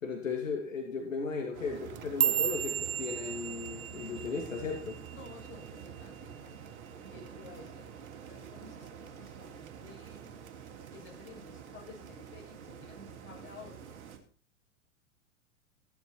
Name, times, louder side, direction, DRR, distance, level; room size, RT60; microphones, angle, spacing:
voice 1, 0.0-5.0, left 5 dB, 70° left, 3 dB, 2.6 m, -36 dB
sound 1, 1.5-14.2, right 7 dB, 55° right, 3.1 m, -47 dB
sound 2, 1.8-6.2 6.5-6.9 7.3-7.7 8.1-8.3 8.9-9.3 9.7-10.5 10.9-11.3 12.1-12.2, right 9 dB, 75° right, 0.7 m, -34 dB
voice 2, 5.1-6.5 6.9-7.9 8.3-10.3 10.9-14.0, left 4 dB, 30° left, -1 dB, 7.2 m, -52 dB
16.0 x 11.0 x 4.5 m, 0.39 s
figure-of-eight pair, 100°, 41 cm